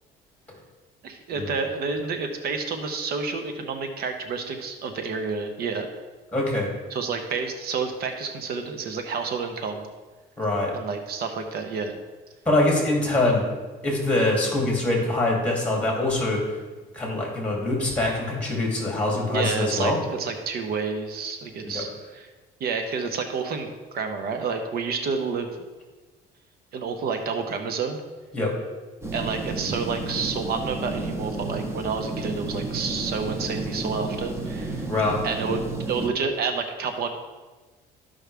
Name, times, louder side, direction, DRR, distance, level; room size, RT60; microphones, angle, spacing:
voice 1, 1.0-5.9 6.9-9.9 10.7-12.0 19.3-21.9 22.1-22.3 22.6-25.5 26.7-28.0 29.1-34.9 35.2-35.6 35.9-37.1, right 5 dB, 65° right, 5 dB, 1.0 m, -29 dB
voice 2, 6.3-6.7 10.4-10.7 12.4-13.5 13.8-16.6 16.9-20.0 21.6-21.8 28.3-28.5 34.9-35.5, left 2 dB, 5° left, -2 dB, 3.0 m, -24 dB
sound 1, 29.0-36.1, right 2 dB, 15° right, 1.2 m, -32 dB
13.0 x 5.4 x 3.5 m, 1.3 s
cardioid pair, 110°, 17 cm